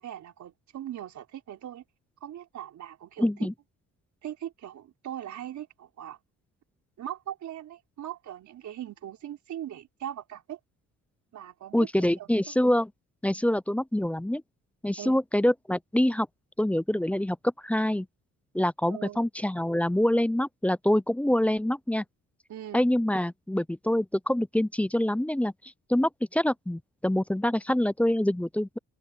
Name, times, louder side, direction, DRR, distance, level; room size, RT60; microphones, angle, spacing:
voice 1, 0.0-1.8 2.2-3.3 4.2-6.2 7.0-10.6 11.3-11.9 12.2-12.6 15.0-15.1 18.9-19.2 22.5-22.8, right 11 dB, 70° right, 4.3 m, -40 dB
voice 2, 3.2-3.5 11.7-12.9 13.2-14.4 14.8-16.3 16.6-17.4 17.6-18.1 18.5-22.0 22.7-25.5 25.9-28.7, left 1 dB, 5° left, 0.5 m, -25 dB
cardioid pair, 90°, 30 cm